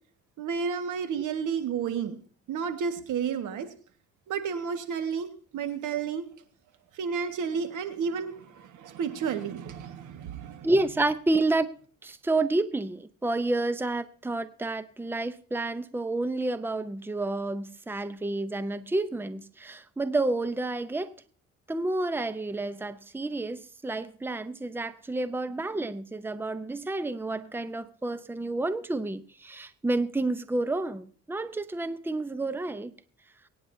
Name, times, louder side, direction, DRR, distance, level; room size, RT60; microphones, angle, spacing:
voice 1, 0.4-2.2 2.5-3.7 4.3-6.3 6.9-10.7, right 6 dB, 80° right, 8 dB, 1.7 m, -31 dB
voice 2, 10.6-11.7 12.0-21.1 21.7-32.9, right 2 dB, 5° right, 13 dB, 0.7 m, -30 dB
23.5 x 9.6 x 2.7 m, 0.44 s
cardioid pair, 90°, 30 cm